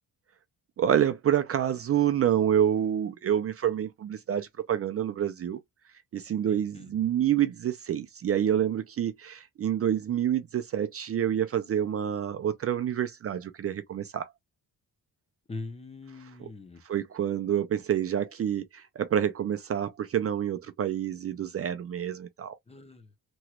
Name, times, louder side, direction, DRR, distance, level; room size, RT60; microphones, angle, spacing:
voice 1, 0.8-5.6 6.1-14.3 16.4-16.5 16.8-22.6, right 10 dB, 40° right, 0.4 m, -28 dB
voice 2, 6.4-7.1 15.5-16.8 22.7-23.2, left 3 dB, 15° left, 0.6 m, -42 dB
3.0 x 3.0 x 2.3 m
wide cardioid pair, 155°, 36 cm